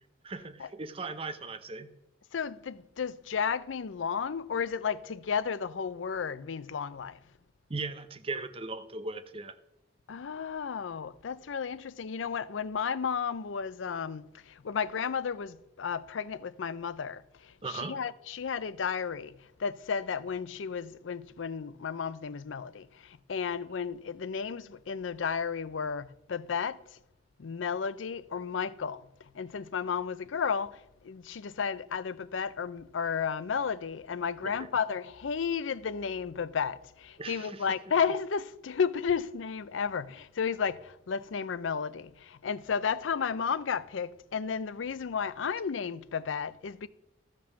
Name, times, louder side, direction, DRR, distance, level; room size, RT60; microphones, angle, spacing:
voice 1, 0.2-1.9 7.7-9.6 17.6-18.0 34.4-34.7 37.2-37.7, right 3 dB, 30° right, 0.7 m, -38 dB
voice 2, 2.3-7.2 10.1-26.8 27.4-46.9, left 6 dB, 90° left, 0.5 m, -33 dB
13.0 x 5.3 x 7.0 m
head